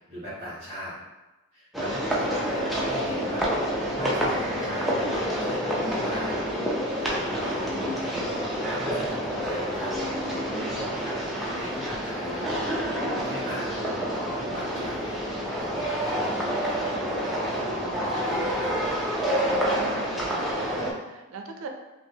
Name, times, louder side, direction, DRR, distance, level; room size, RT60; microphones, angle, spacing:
voice 1, 0.1-0.9 1.5-6.5 7.0-9.9 10.4-11.2 11.5-12.9 13.2-15.2 15.5-18.8, equal, 30° right, -12 dB, 1.5 m, -39 dB
sound 1, 1.7-20.9, equal, ahead, 0.4 m, -28 dB
sound 2, 1.9-7.8, equal, 80° left, 0.8 m, -42 dB
voice 2, 10.5-10.8 19.5-21.7, right 3 dB, 75° right, 4 dB, 0.4 m, -40 dB
4.8 x 2.0 x 2.7 m, 1.1 s
head